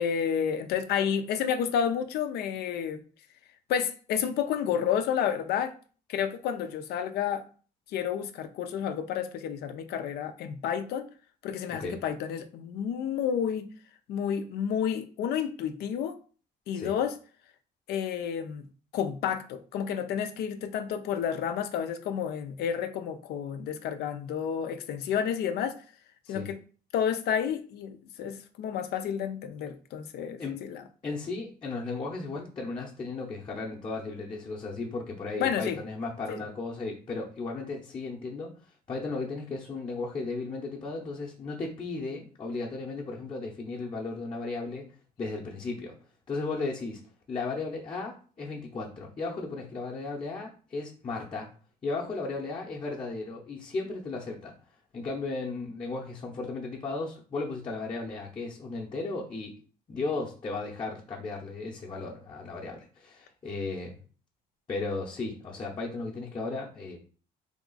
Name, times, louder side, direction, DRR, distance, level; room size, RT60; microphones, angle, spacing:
voice 1, 0.0-3.0 3.7-5.7 6.1-7.4 7.9-11.1 11.4-13.7 14.1-16.1 16.7-17.1 17.9-18.7 18.9-25.8 26.3-26.6 26.9-30.8 35.4-35.8 36.3-36.4, left 8 dB, 70° left, 9 dB, 0.5 m, -30 dB
voice 2, 31.0-38.5 38.9-44.9 45.2-45.9 46.3-47.0 47.3-51.5 51.8-54.5 54.9-59.5 59.9-64.0 64.7-67.0, left 3 dB, 30° left, -4 dB, 0.8 m, -35 dB
3.4 x 2.4 x 3.9 m, 0.39 s
cardioid pair, 110°, 17 cm